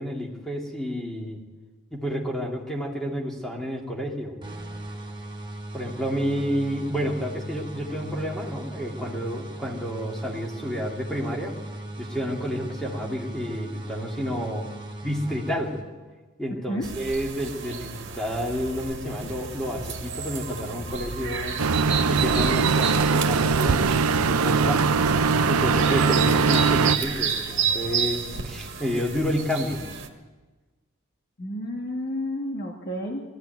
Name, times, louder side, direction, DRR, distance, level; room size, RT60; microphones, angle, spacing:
voice 1, 0.0-1.4 1.9-4.3 5.7-11.6 12.0-14.7 15.0-15.7 16.4-21.6 22.1-24.8 25.5-29.8, equal, ahead, -2 dB, 2.8 m, -30 dB
sound 1, 4.4-16.1, right 1 dB, 20° right, 2.8 m, -38 dB
sound 2, 16.8-30.1, right 6 dB, 55° right, 1.8 m, -31 dB
sound 3, 21.6-27.0, right 4 dB, 85° right, 0.6 m, -21 dB
voice 2, 31.4-33.2, left 1 dB, 45° left, 0 dB, 1.9 m, -31 dB
20.0 x 14.5 x 9.4 m, 1.3 s
head